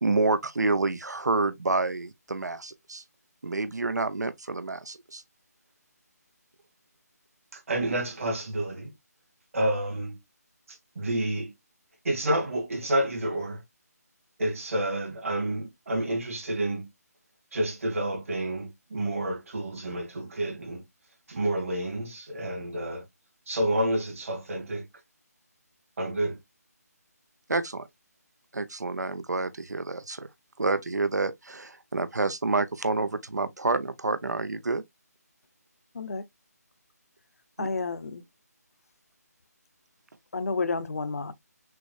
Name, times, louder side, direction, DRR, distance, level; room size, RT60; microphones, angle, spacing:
voice 1, 0.0-3.0 3.4-5.2 27.5-27.9 28.5-30.3 30.6-34.8 37.6-37.7, right 3 dB, 80° right, 0.8 m, -28 dB
voice 2, 7.5-8.9 9.5-10.2 11.0-11.5 12.0-13.6 14.4-16.9 17.5-20.8 21.3-23.0 23.5-24.9 26.0-26.4, right 1 dB, 55° right, 2.3 m, -29 dB
voice 3, 37.6-38.2 40.3-41.3, left 4 dB, 60° left, 0.8 m, -30 dB
6.1 x 3.2 x 2.4 m
figure-of-eight pair, 160°, 9 cm